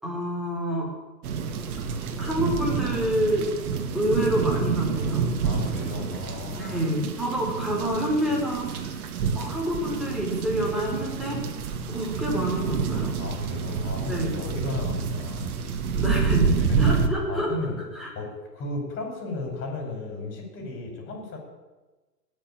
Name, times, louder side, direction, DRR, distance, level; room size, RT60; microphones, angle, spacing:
voice 1, 0.0-0.9 2.2-3.5 3.9-5.4 6.6-8.9 9.3-11.4 11.7-13.2 14.1-14.4 15.9-16.5 16.8-17.5 17.9-18.1, equal, ahead, -3 dB, 4.4 m, -27 dB
sound 1, 1.2-17.1, right 5 dB, 60° right, 2.1 m, -28 dB
voice 2, 5.4-6.9 13.2-15.8 16.7-16.8 17.3-21.4, left 3 dB, 25° left, 2 dB, 5.1 m, -35 dB
18.0 x 7.0 x 10.0 m, 1.2 s
hypercardioid pair, 135°, 49 cm